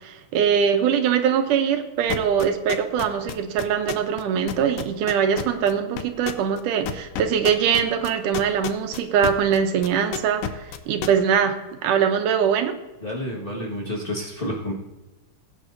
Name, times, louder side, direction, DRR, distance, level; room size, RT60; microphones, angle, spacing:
voice 1, 0.0-11.6 11.8-12.7, right 7 dB, 85° right, 6 dB, 2.4 m, -22 dB
sound 1, 2.1-4.2 4.5-9.6 9.8-11.1, left 9 dB, 80° left, 1.4 m, -29 dB
voice 2, 13.0-14.7, left 1 dB, 35° left, -3 dB, 0.9 m, -29 dB
21.5 x 9.0 x 2.6 m, 1.1 s
omnidirectional pair, 3.6 m